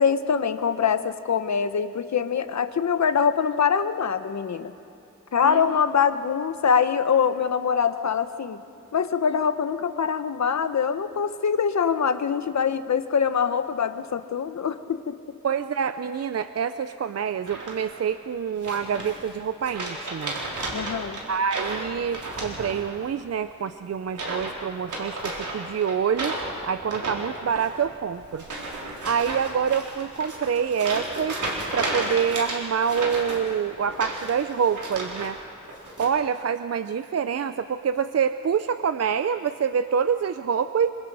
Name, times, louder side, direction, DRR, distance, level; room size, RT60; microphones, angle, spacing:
voice 1, 0.0-4.7 5.3-8.6 8.9-15.2 20.7-21.2, left 7 dB, 65° left, 10 dB, 1.0 m, -24 dB
voice 2, 5.4-5.8 15.4-20.4 21.3-26.3 26.6-31.4 31.7-35.4 36.0-40.9, right 7 dB, 55° right, 10 dB, 0.6 m, -26 dB
sound 1, 17.4-18.0 18.6-19.3 19.6-23.1 23.3-23.7 24.1-24.5 24.8-35.3 35.6-36.1, right 2 dB, 80° right, 4.4 m, -33 dB
27.0 x 25.5 x 4.9 m, 2.9 s
wide cardioid pair, 120°, 30 cm